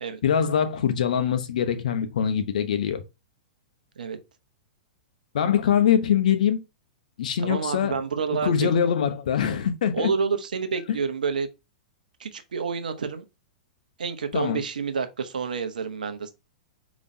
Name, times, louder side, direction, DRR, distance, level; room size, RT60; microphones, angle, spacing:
voice 1, 0.2-3.0 5.3-6.6 7.2-8.0 8.3-10.1 14.3-14.6, left 8 dB, 70° left, 0.8 m, -23 dB
voice 2, 7.4-8.7 9.9-11.5 12.2-13.2 14.0-16.3, right 5 dB, 80° right, 0.8 m, -28 dB
5.1 x 3.0 x 2.7 m
hypercardioid pair, 110°, 4 cm